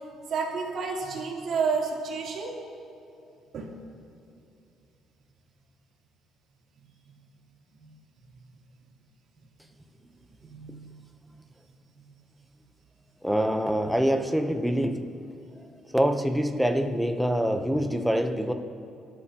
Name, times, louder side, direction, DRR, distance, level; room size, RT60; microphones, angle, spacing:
voice 1, 0.3-2.5 3.5-3.7 10.4-10.9, right 5 dB, 50° right, -3 dB, 3.1 m, -30 dB
voice 2, 13.2-15.0 15.9-18.5, equal, ahead, 5 dB, 0.8 m, -25 dB
30.0 x 13.5 x 2.9 m, 2.7 s
cardioid pair, 170°, 0 cm